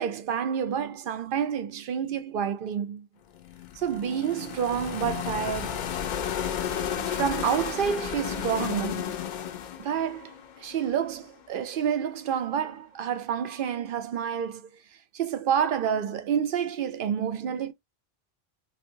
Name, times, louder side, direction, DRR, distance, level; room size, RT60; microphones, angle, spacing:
voice 1, 0.0-3.1 3.8-5.9 7.1-9.2 9.8-10.3 10.6-14.6 15.1-17.7, right 8 dB, 65° right, 0.7 m, -29 dB
sound 1, 3.3-11.4, left 9 dB, 60° left, 0.6 m, -33 dB
3.5 x 2.4 x 2.6 m
omnidirectional pair, 1.0 m